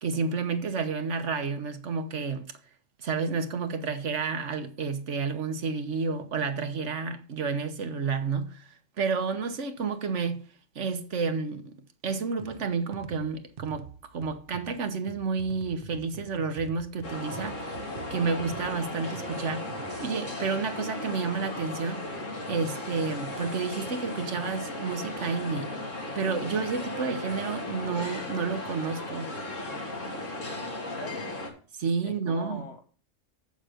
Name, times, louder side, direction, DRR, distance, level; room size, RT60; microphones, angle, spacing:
voice 1, 0.0-2.4 3.0-10.4 10.7-11.8 12.0-17.8 18.1-19.7 20.0-22.0 22.5-25.7 26.1-29.3 31.7-32.6, right 5 dB, 70° right, 1.3 m, -30 dB
sound 1, 12.4-20.2, right 8 dB, 55° right, 0.8 m, -47 dB
sound 2, 17.0-31.5, left 1 dB, 75° left, 2.9 m, -36 dB
voice 2, 30.8-31.3 32.0-32.9, left 1 dB, 55° left, 1.7 m, -42 dB
7.7 x 7.2 x 5.0 m
omnidirectional pair, 1.3 m